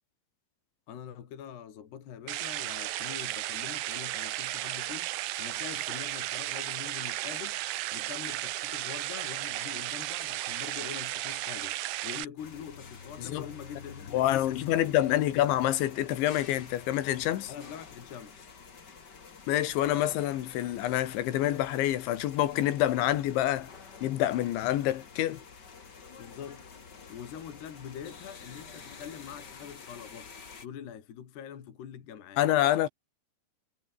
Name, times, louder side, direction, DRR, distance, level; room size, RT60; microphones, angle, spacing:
voice 1, 0.9-7.6 7.9-15.5 17.5-18.5 26.2-26.7 27.1-30.3 30.6-32.4, left 9 dB, 65° left, 4.8 m, -44 dB
sound 1, 2.3-12.2, right 16 dB, 80° right, 2.0 m, -34 dB
sound 2, 12.4-30.7, left 5 dB, 35° left, 1.9 m, -49 dB
voice 2, 14.1-17.5 19.5-23.7 24.0-25.4 32.4-32.9, left 13 dB, 85° left, 4.0 m, -27 dB
omnidirectional pair, 5.2 m